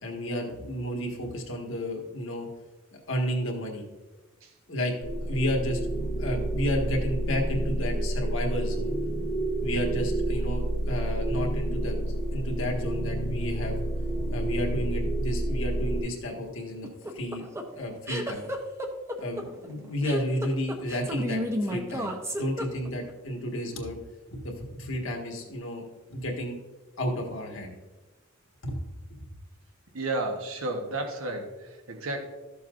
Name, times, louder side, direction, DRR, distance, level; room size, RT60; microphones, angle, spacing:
voice 1, 0.0-2.5 3.1-3.8 4.7-4.9 5.2-5.8 6.2-8.9 9.6-12.0 12.3-13.8 14.3-16.9 17.1-17.5 17.7-18.5 19.2-22.1 22.4-24.0 24.3-26.6 27.0-27.7 28.6-28.7, equal, 65° left, 1 dB, 1.6 m, -32 dB
sound 1, 5.0-16.0, right 1 dB, 90° left, 1.6 m, -29 dB
sound 2, 16.8-23.1, equal, 15° right, 0.8 m, -32 dB
voice 2, 29.9-32.2, right 2 dB, 75° right, 3 dB, 1.2 m, -32 dB
13.5 x 6.9 x 2.5 m, 1.2 s
head